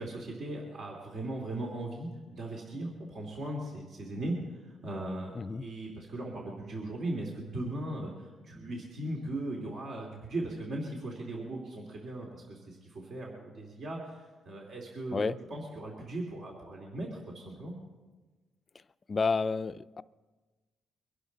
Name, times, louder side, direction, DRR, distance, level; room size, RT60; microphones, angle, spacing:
voice 1, 0.0-4.4 4.6-17.8, right 1 dB, 60° right, -1 dB, 2.7 m, -38 dB
voice 2, 19.1-20.0, left 4 dB, 35° left, 14 dB, 0.4 m, -30 dB
23.5 x 11.5 x 4.0 m, 1.3 s
cardioid pair, 90°, 0 cm